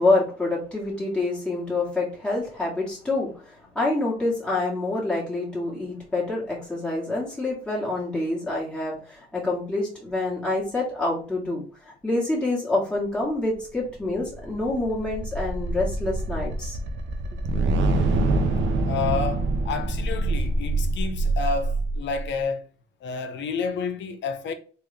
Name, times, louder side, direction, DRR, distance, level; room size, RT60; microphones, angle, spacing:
voice 1, 0.0-16.8, left 2 dB, 5° left, 1.6 m, -27 dB
sound 1, 13.9-22.3, right 2 dB, 70° right, 0.7 m, -25 dB
voice 2, 18.9-22.7 23.0-24.5, left 5 dB, 65° left, 0.6 m, -30 dB
3.5 x 2.4 x 3.3 m
cardioid pair, 90°, 20 cm